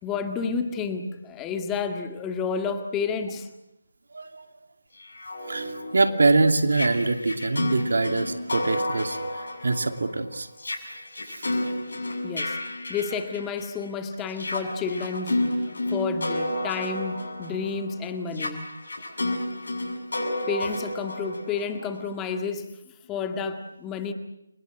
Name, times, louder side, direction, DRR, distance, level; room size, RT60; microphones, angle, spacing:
voice 1, 0.0-3.5 12.2-12.6 12.9-15.5 15.9-18.7 20.5-22.7 23.1-24.1, left 5 dB, 10° left, 7 dB, 1.9 m, -30 dB
voice 2, 4.1-4.4 5.5-9.2 9.6-10.5 11.3-11.4 19.3-19.4, right 3 dB, 60° right, 8 dB, 2.7 m, -24 dB
sound 1, 5.0-13.8 14.3-22.1, left 1 dB, 65° left, 7.2 m, -31 dB
30.0 x 25.0 x 7.8 m, 0.85 s
figure-of-eight pair, 155°, 0 cm